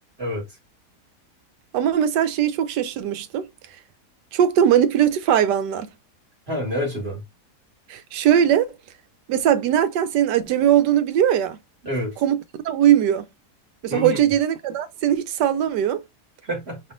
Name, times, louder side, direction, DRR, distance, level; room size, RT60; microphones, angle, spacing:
voice 1, 1.7-3.5 4.3-5.9 7.9-8.7 9.3-11.6 12.2-13.3 13.8-16.0, right 10 dB, 90° right, 1.3 m, -20 dB
voice 2, 6.5-7.2 11.8-12.1 13.9-14.2 16.4-16.8, equal, 40° right, 2.1 m, -27 dB
5.4 x 3.0 x 2.5 m
omnidirectional pair, 1.8 m